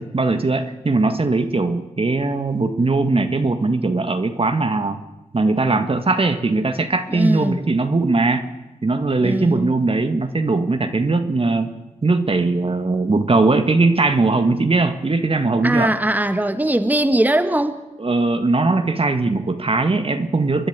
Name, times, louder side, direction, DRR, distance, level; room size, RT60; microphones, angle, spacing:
voice 1, 0.0-5.0 5.3-8.5 8.8-11.7 12.0-15.9 18.0-20.7, right 3 dB, 40° right, 8 dB, 1.8 m, -20 dB
voice 2, 7.1-7.6 9.2-9.8 15.6-17.8, right 1 dB, 10° right, 8 dB, 1.7 m, -20 dB
27.5 x 10.5 x 9.3 m, 1.1 s
supercardioid pair, 40°, 14 cm